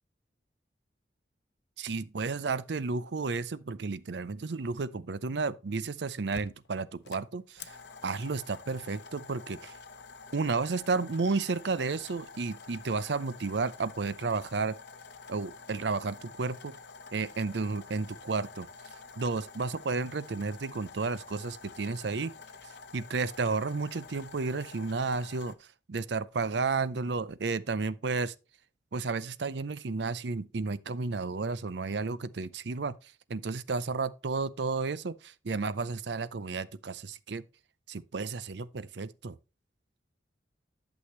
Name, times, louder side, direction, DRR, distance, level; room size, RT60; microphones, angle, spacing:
voice 1, 1.8-7.8 8.0-9.7 10.3-14.8 15.3-16.7 17.1-18.7 19.2-22.3 22.6-28.3 28.9-33.0 33.3-37.5 37.9-39.4, right 4 dB, 75° right, 0.6 m, -32 dB
sound 1, 5.8-5.9 6.3-25.5, left 4 dB, 70° left, 0.8 m, -49 dB
11.5 x 6.3 x 3.2 m
head